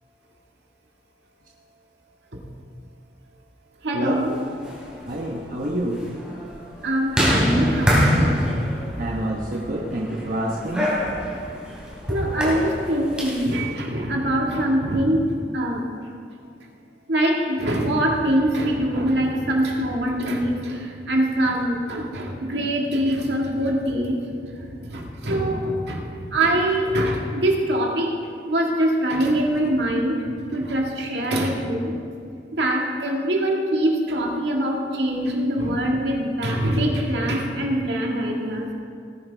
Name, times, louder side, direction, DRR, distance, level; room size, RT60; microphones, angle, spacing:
voice 1, 3.8-4.4 6.8-8.4 12.1-15.2 15.5-15.9 17.1-24.2 24.5-28.1 28.4-30.2 30.5-31.9 32.5-38.7, right 1 dB, 75° right, -1 dB, 2.0 m, -23 dB
sound 1, 4.5-13.6, equal, 5° right, 3.4 m, -25 dB
voice 2, 5.1-6.0 9.0-10.9, right 1 dB, 50° right, -3 dB, 1.1 m, -27 dB
18.5 x 10.0 x 3.5 m, 2.3 s
head